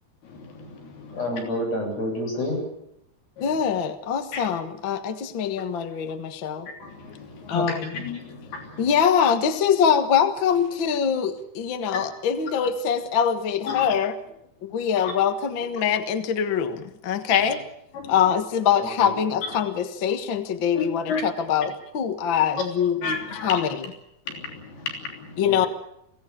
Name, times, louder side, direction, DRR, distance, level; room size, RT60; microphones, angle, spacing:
voice 1, 0.4-1.2 3.4-3.5 4.3-4.4 6.8-8.8 13.7-13.8 15.0-15.1 17.3-17.4 18.0-18.1 20.8-21.2 23.0-23.5 24.3-25.3, left 4 dB, 75° left, 2 dB, 5.2 m, -32 dB
voice 2, 1.1-2.6 19.0-19.1 25.4-25.7, left 1 dB, 40° left, 1 dB, 9.1 m, -28 dB
voice 3, 3.4-6.7 7.5-8.0 8.8-14.2 14.6-17.6 18.1-23.9 25.4-25.7, left 8 dB, 60° left, 9 dB, 1.2 m, -23 dB
23.5 x 17.0 x 8.6 m, 0.79 s
omnidirectional pair, 4.5 m